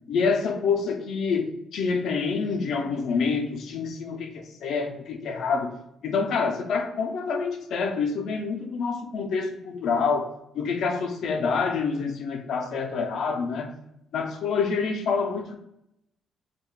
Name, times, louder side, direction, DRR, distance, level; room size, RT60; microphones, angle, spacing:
voice 1, 0.1-5.8 6.0-13.7 14.1-15.5, left 5 dB, 75° left, 0.3 m, -27 dB
2.2 x 2.1 x 2.9 m
cardioid pair, 90°, 0 cm